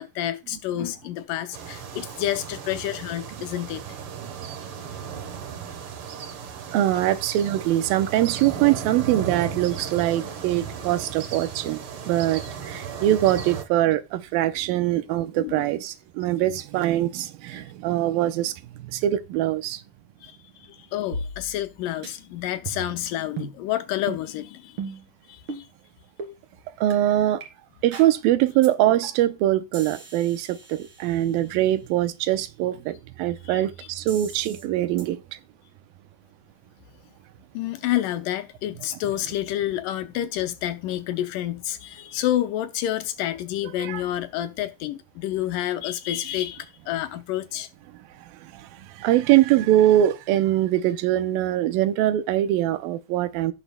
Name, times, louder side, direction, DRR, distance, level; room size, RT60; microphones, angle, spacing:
voice 1, 0.0-3.8 15.4-15.6 17.5-17.6 20.2-24.9 25.3-25.7 33.4-33.6 37.5-47.7, left 13 dB, 75° left, 2.2 m, -29 dB
sound 1, 1.5-13.6, right 7 dB, 60° right, 1.4 m, -36 dB
voice 2, 6.7-19.8 26.8-27.4 27.8-35.2 43.8-44.0 48.4-53.5, right 13 dB, 90° right, 2.5 m, -23 dB
sound 2, 21.1-21.8 22.0-22.1 22.7-23.0 23.4-23.6 24.1-24.2 24.8-25.1 25.5-25.7 26.2-26.3 26.9-27.0 27.4-27.5 27.9-28.1 28.6-28.7 29.0-29.4 29.7-31.6 34.1-34.7 35.0-35.1, right 3 dB, 40° right, 2.9 m, -37 dB
16.5 x 6.3 x 2.2 m
omnidirectional pair, 4.1 m